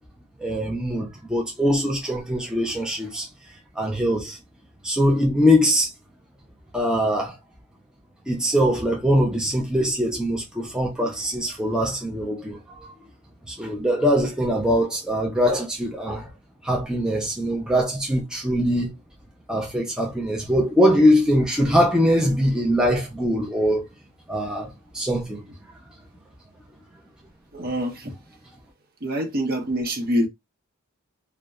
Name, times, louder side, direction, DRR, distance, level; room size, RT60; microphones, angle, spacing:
voice 1, 0.4-3.3 3.8-4.4 4.8-5.9 6.7-7.3 8.3-12.9 13.5-16.3 16.6-18.9 19.5-23.9 24.3-25.4, equal, 5° right, 0.4 m, -22 dB
voice 2, 27.5-28.1 29.0-30.3, equal, 45° right, 0.7 m, -25 dB
2.7 x 2.1 x 2.3 m
head